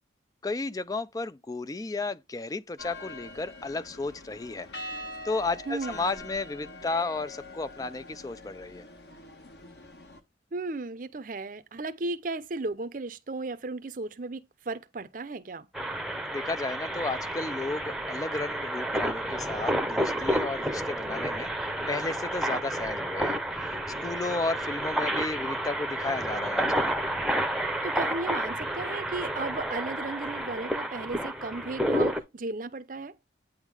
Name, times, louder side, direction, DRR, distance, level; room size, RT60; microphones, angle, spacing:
voice 1, 0.4-4.9 5.2-8.8 16.3-21.5 21.9-23.8 24.0-26.9, left 3 dB, 20° left, 0.3 m, -33 dB
sound 1, 2.8-10.2, left 1 dB, 60° left, 1.3 m, -43 dB
voice 2, 5.7-6.2 10.5-15.7 27.8-33.1, right 3 dB, 45° right, 0.6 m, -35 dB
sound 2, 15.7-32.2, right 1 dB, ahead, 0.7 m, -30 dB
9.0 x 3.6 x 4.8 m
head